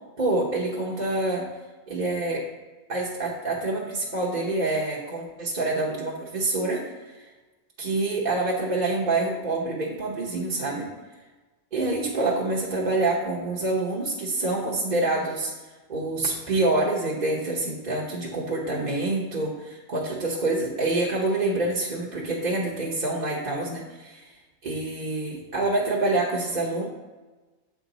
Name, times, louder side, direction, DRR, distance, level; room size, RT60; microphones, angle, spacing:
voice 1, 0.2-1.4 1.9-2.4 2.9-6.8 7.1-7.3 7.8-10.9 11.7-15.5 15.9-24.3 24.6-26.9, right 2 dB, 40° right, -4 dB, 1.1 m, -26 dB
8.0 x 4.8 x 4.0 m, 1.2 s
omnidirectional pair, 1.3 m